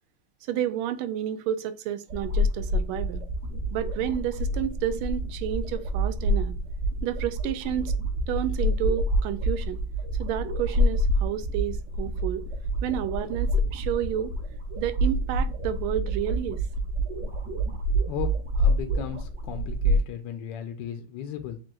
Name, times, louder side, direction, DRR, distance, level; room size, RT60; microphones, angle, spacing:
voice 1, 0.4-3.2 3.7-6.5 7.0-7.9 8.3-9.8 10.2-12.4 12.8-14.3 14.8-16.6, right 11 dB, 85° right, 1.4 m, -30 dB
sound 1, 2.1-20.0, equal, 45° right, 1.0 m, -27 dB
voice 2, 18.6-21.6, left 10 dB, 75° left, 1.1 m, -36 dB
7.5 x 2.5 x 2.3 m
omnidirectional pair, 2.3 m